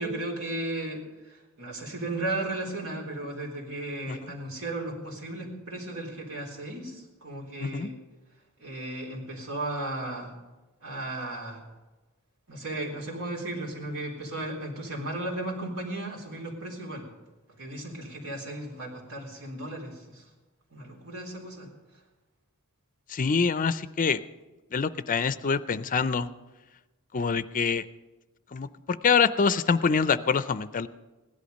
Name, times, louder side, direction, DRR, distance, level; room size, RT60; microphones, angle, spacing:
voice 1, 0.0-8.0 8.6-10.3 10.8-11.6 12.5-17.1 17.5-20.2 20.7-21.7, right 2 dB, 80° right, -2 dB, 3.8 m, -35 dB
voice 2, 23.1-24.2 24.7-26.3 27.1-27.8 28.5-30.9, left 5 dB, 40° left, 15 dB, 0.5 m, -25 dB
16.5 x 11.5 x 5.3 m, 1.2 s
head